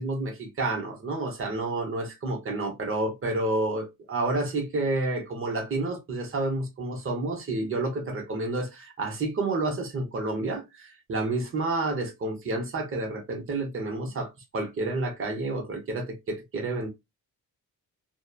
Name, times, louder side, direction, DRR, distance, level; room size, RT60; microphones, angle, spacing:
voice 1, 0.0-16.9, right 2 dB, 35° right, 0.8 m, -30 dB
2.9 x 2.0 x 2.2 m
wide cardioid pair, 160°, 37 cm